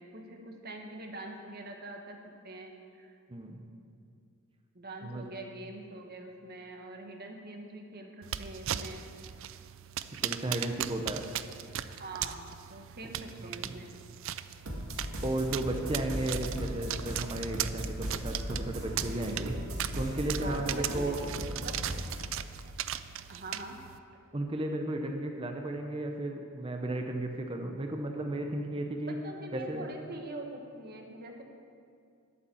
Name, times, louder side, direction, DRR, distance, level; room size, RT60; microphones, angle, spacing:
voice 1, 0.0-2.2 2.4-3.1 4.7-9.0 11.9-13.9 20.3-21.2 21.6-21.8 23.3-23.8 29.2-31.4, right 2 dB, 45° right, 3 dB, 1.5 m, -44 dB
voice 2, 3.3-3.6 5.0-5.2 10.2-11.2 13.4-13.7 15.2-19.5 19.9-21.2 24.3-29.1 29.5-29.9, right 1 dB, 25° right, 3 dB, 0.8 m, -34 dB
sound 1, 8.2-24.0, right 11 dB, 65° right, 0.4 m, -39 dB
sound 2, 14.6-22.3, equal, 80° right, 2.1 m, -38 dB
12.0 x 8.5 x 7.1 m, 2.3 s
head